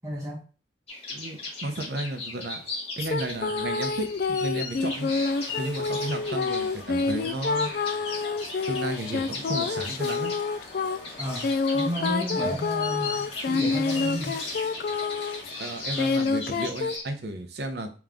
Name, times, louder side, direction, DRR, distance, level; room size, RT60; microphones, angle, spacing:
voice 1, 0.0-0.4 11.2-14.4, equal, 20° right, -4 dB, 1.1 m, -32 dB
sound 1, 0.9-17.0, left 3 dB, 35° left, 1.5 m, -38 dB
voice 2, 1.1-2.6 3.0-5.1 5.6-7.7 8.7-10.3 12.4-12.6 15.6-17.9, right 1 dB, 65° right, 6 dB, 0.7 m, -33 dB
sound 2, 3.0-15.5 16.0-16.9, left 4 dB, 55° left, 0.3 m, -28 dB
sound 3, 4.8-16.2, left 2 dB, 70° left, 1.1 m, -45 dB
3.5 x 3.0 x 3.7 m, 0.36 s
head